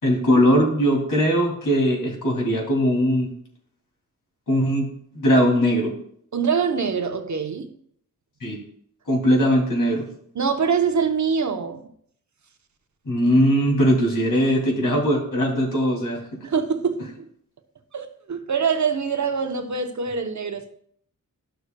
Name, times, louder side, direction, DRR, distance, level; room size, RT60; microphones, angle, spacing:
voice 1, 0.0-3.3 4.5-4.9 5.1-5.9 8.4-8.6 9.1-10.0 13.1-16.2, equal, 65° left, -2 dB, 2.7 m, -20 dB
voice 2, 6.3-7.7 10.3-11.8 16.4-17.3 17.9-20.7, right 6 dB, 55° right, 7 dB, 0.8 m, -24 dB
12.5 x 6.5 x 2.2 m, 0.64 s
wide cardioid pair, 115°, 34 cm